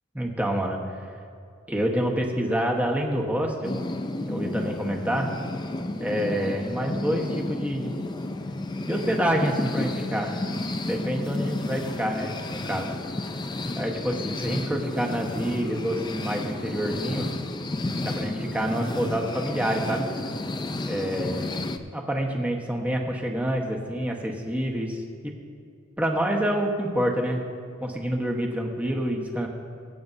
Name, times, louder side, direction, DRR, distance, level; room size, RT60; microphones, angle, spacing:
voice 1, 0.1-0.8 1.7-3.8 4.3-5.3 6.0-7.9 8.9-10.4 10.8-12.9 13.8-17.3 18.0-20.1 20.8-21.5 21.9-25.3 26.0-27.4 27.8-29.5, equal, 5° right, 0 dB, 1.2 m, -27 dB
sound 1, 3.6-21.8, left 2 dB, 20° left, 0.5 m, -32 dB
22.0 x 8.5 x 2.7 m, 2.4 s
head